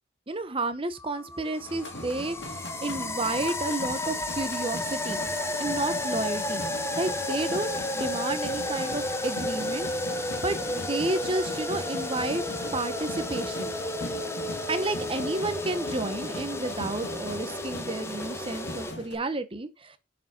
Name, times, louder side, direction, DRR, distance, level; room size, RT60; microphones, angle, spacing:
voice 1, 0.3-5.2 5.6-6.7 7.0-13.7 14.7-20.0, right 2 dB, 25° right, 0.9 m, -31 dB
sound 1, 1.0-18.9, left 1 dB, 15° left, 0.7 m, -32 dB
sound 2, 1.6-19.2, left 1 dB, 60° left, 2.2 m, -40 dB
7.4 x 4.8 x 5.9 m
head